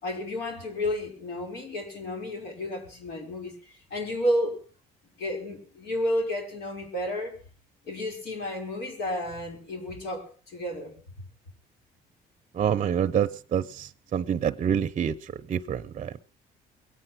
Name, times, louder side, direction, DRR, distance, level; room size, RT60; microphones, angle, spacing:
voice 1, 0.0-4.6 5.2-7.4 7.8-10.9, left 1 dB, 75° left, 5.6 m, -31 dB
voice 2, 12.5-15.1 15.5-16.2, right 8 dB, 40° right, 0.7 m, -27 dB
22.0 x 9.0 x 5.9 m
cardioid pair, 110°, 17 cm